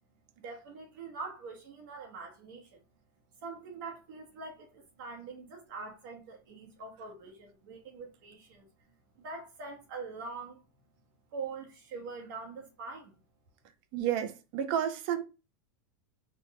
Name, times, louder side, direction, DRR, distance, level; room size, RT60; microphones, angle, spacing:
voice 1, 0.4-2.8 3.4-8.7 9.1-10.6 11.3-13.1, right 4 dB, 70° right, 1.1 m, -44 dB
voice 2, 13.9-15.2, right 10 dB, 50° right, 0.6 m, -31 dB
4.2 x 2.4 x 3.1 m
supercardioid pair, 135°, 11 cm